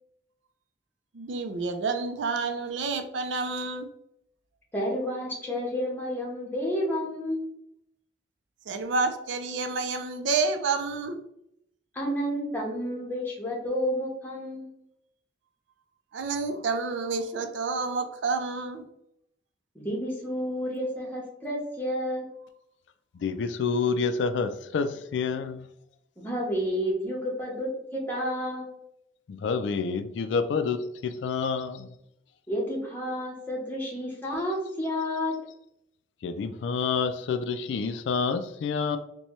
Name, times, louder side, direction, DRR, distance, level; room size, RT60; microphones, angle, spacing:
voice 1, 1.1-3.9 8.7-11.2 16.1-18.8, right 4 dB, 85° right, 7 dB, 0.4 m, -29 dB
voice 2, 4.7-7.5 11.9-14.7 19.7-22.3 26.2-28.7 32.5-35.3, equal, 10° left, -3 dB, 1.0 m, -30 dB
voice 3, 23.2-25.7 29.3-31.9 36.2-39.0, left 5 dB, 75° left, 10 dB, 0.3 m, -28 dB
4.1 x 2.2 x 3.0 m, 0.78 s
head